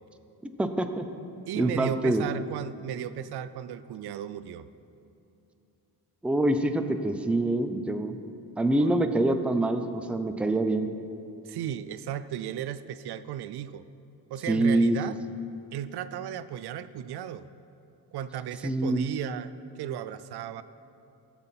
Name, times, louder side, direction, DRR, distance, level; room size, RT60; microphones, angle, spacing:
voice 1, 0.6-1.1 1.5-2.3 6.2-8.2 8.6-10.9 14.5-15.0 18.6-19.0, right 2 dB, 5° right, 7 dB, 0.5 m, -25 dB
voice 2, 1.5-4.7 8.8-8.9 11.5-13.9 14.3-15.2 15.7-17.5 18.1-20.6, right 10 dB, 75° right, 13 dB, 0.5 m, -35 dB
16.0 x 7.2 x 5.8 m, 2.7 s
cardioid pair, 130°, 40 cm